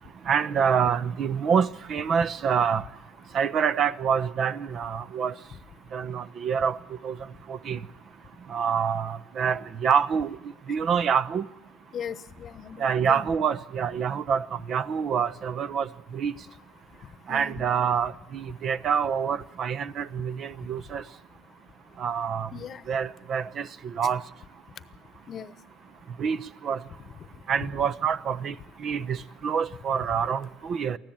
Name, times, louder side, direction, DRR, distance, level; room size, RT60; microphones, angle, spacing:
voice 1, 0.3-2.8 3.3-5.3 5.9-6.8 7.0-7.2 7.5-7.8 8.5-10.3 10.7-11.4 12.8-16.3 17.3-21.0 22.0-22.5 22.9-24.2 26.2-26.4 26.6-26.8 27.5-28.5 28.8-31.0, right 7 dB, 45° right, 0.8 m, -26 dB
voice 2, 11.9-13.2 17.3-17.7 22.5-22.8 25.3-25.5 30.8-30.9, left 8 dB, 40° left, 1.0 m, -38 dB
24.0 x 15.0 x 8.8 m
cardioid pair, 110°, 0 cm